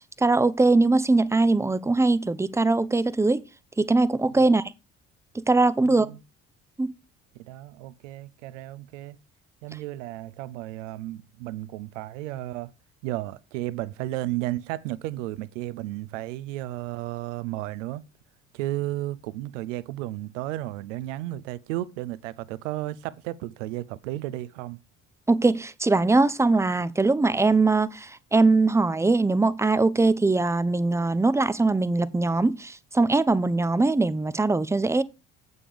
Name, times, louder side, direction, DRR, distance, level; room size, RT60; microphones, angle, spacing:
voice 1, 0.2-3.4 3.8-4.6 5.3-6.1 6.8-6.9 25.3-35.0, right 3 dB, 5° right, 0.5 m, -21 dB
voice 2, 5.8-6.2 7.4-9.2 9.6-12.7 13.0-18.0 18.5-24.8, right 16 dB, 70° right, 0.6 m, -33 dB
8.4 x 5.4 x 5.0 m
figure-of-eight pair, 55°, 38 cm